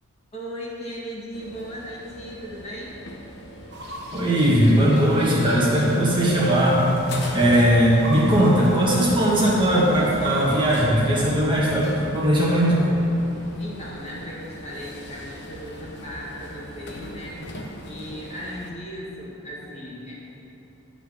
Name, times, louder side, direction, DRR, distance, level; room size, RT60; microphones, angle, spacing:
voice 1, 0.3-3.0 13.6-17.4 17.8-20.1, equal, 30° left, -5 dB, 1.5 m, -37 dB
sound 1, 1.3-18.7, left 1 dB, 50° left, 0.9 m, -40 dB
sound 2, 3.7-10.8, right 1 dB, 50° right, 1.2 m, -39 dB
voice 2, 4.1-6.8 7.3-12.8, equal, 20° right, -6 dB, 1.6 m, -19 dB
11.5 x 4.0 x 7.6 m, 2.9 s
head